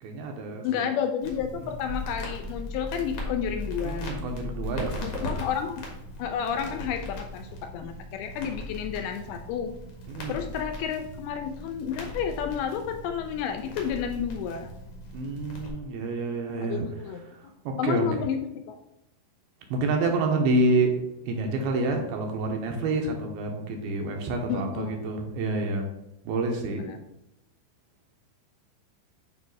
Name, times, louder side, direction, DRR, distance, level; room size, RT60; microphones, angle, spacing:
voice 1, 0.0-0.9 3.8-5.5 10.1-10.4 15.1-16.9 17.3-18.2 19.7-21.0 21.3-25.9 26.2-26.9, right 2 dB, 80° right, 2 dB, 2.5 m, -28 dB
voice 2, 0.6-4.1 5.0-5.9 6.2-9.7 10.3-14.7 16.6-17.2 17.8-18.4 18.7-18.8 24.5-25.1 26.7-27.0, left 8 dB, 80° left, 6 dB, 2.3 m, -31 dB
Crackle, 1.2-15.7, left 1 dB, 55° left, 1.8 m, -38 dB
9.1 x 3.3 x 4.6 m, 0.87 s
omnidirectional pair, 4.8 m